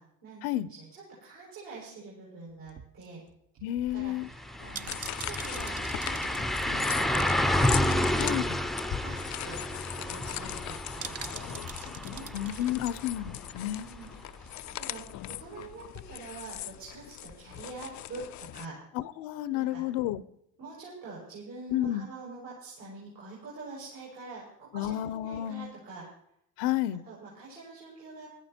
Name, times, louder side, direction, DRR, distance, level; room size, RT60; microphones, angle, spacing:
voice 1, 0.0-0.4 0.8-3.2 3.9-7.5 7.9-8.6 9.0-9.2 9.4-9.6 10.0-12.3 13.8-18.8 19.5-19.8 20.6-26.1 27.1-28.3, right 3 dB, 65° right, -6 dB, 6.8 m, -45 dB
sound 1, 2.7-7.9 8.2-8.3 8.6-8.9 9.2-9.3 9.6-9.9 11.0-12.7 13.1-13.2, right 7 dB, 40° right, 0.9 m, -45 dB
voice 2, 3.6-4.3 8.1-8.4 12.3-13.9 18.9-20.2 21.7-22.0 24.7-25.7 26.6-27.0, left 13 dB, 85° left, 17 dB, 0.8 m, -31 dB
sound 2, 3.9-4.0 4.3-14.1 14.5-14.6 17.3-17.4, left 1 dB, ahead, 0.6 m, -30 dB
sound 3, 4.6-18.6, left 15 dB, 50° left, 0.5 m, -40 dB
15.5 x 13.0 x 4.4 m, 0.74 s
supercardioid pair, 85°, 38 cm